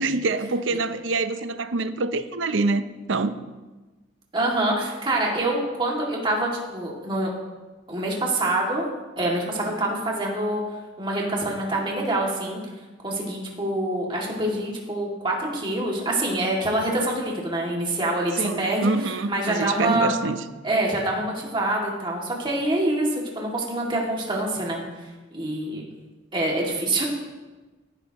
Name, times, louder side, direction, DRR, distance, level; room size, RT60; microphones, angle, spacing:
voice 1, 0.0-2.8 3.1-3.4 18.3-20.4, right 3 dB, 70° right, 0.6 m, -25 dB
voice 2, 4.3-7.3 7.9-8.9 9.2-10.6 11.0-12.6 13.0-18.9 19.3-20.1 20.6-24.8 25.3-25.8 26.3-27.0, right 1 dB, 25° right, 2.3 m, -25 dB
17.0 x 11.0 x 3.0 m
head